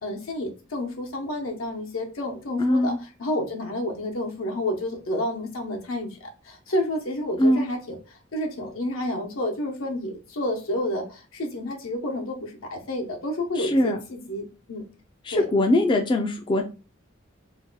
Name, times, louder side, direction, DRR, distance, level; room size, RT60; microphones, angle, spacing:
voice 1, 0.0-2.9 3.2-14.9 15.3-15.5, left 1 dB, 85° left, 0.8 m, -30 dB
voice 2, 2.6-3.0 7.4-7.6 13.6-14.0 15.3-16.6, left 1 dB, 25° left, 0.3 m, -21 dB
2.7 x 2.2 x 3.8 m
head